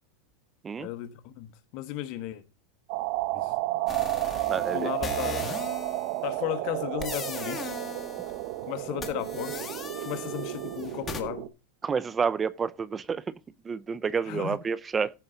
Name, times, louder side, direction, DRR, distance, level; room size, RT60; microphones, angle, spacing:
voice 1, 0.8-2.4 3.3-3.5 4.7-5.7 6.2-7.7 8.6-9.7 10.0-11.5 14.2-14.6, left 14 dB, 55° left, 1.3 m, -35 dB
sound 1, 2.9-11.5, right 17 dB, 60° right, 0.9 m, -32 dB
sound 2, 3.9-6.2 7.0-8.5 9.0-11.2, left 4 dB, 20° left, 1.9 m, -39 dB
voice 2, 4.5-4.9 11.8-13.2 13.6-15.1, right 6 dB, 20° right, 0.4 m, -29 dB
15.0 x 5.5 x 3.9 m
supercardioid pair, 120°, 0 cm